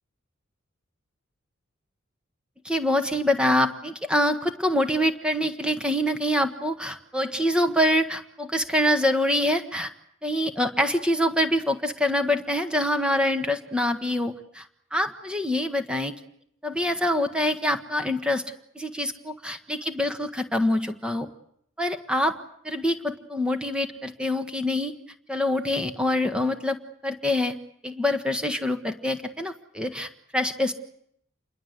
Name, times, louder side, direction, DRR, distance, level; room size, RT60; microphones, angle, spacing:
voice 1, 2.6-9.9 10.2-14.7 14.9-16.1 16.6-18.5 18.7-21.3 21.8-22.4 22.6-24.9 25.3-27.6 27.8-30.7, left 1 dB, 5° right, 7 dB, 1.5 m, -25 dB
27.5 x 22.5 x 8.1 m, 0.70 s
head